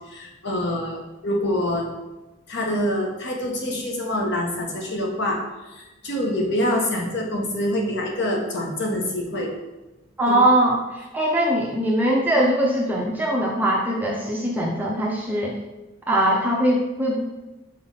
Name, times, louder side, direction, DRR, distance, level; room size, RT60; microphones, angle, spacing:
voice 1, 0.1-1.9 2.5-5.4 5.7-9.5 10.3-10.4, left 1 dB, 60° left, 0 dB, 1.3 m, -25 dB
voice 2, 10.2-15.6 16.1-17.2, right 1 dB, 10° right, -3 dB, 0.6 m, -21 dB
5.5 x 4.3 x 4.1 m, 1.1 s
head